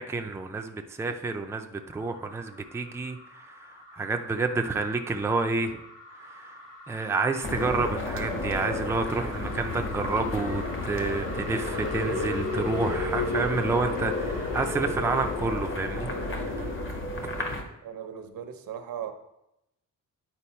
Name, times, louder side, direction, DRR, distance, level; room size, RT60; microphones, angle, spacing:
voice 1, 0.0-3.6 3.9-5.8 6.2-6.5 6.9-17.0 17.2-17.6, right 3 dB, 10° right, 5 dB, 0.4 m, -29 dB
sound 1, 1.8-17.0, left 3 dB, 70° left, 2.8 m, -37 dB
sound 2, 7.4-17.6, left 2 dB, 35° left, 1.0 m, -33 dB
voice 2, 17.8-19.1, right 9 dB, 90° right, 7 dB, 0.9 m, -37 dB
9.9 x 4.5 x 4.3 m, 0.86 s
wide cardioid pair, 150°, 33 cm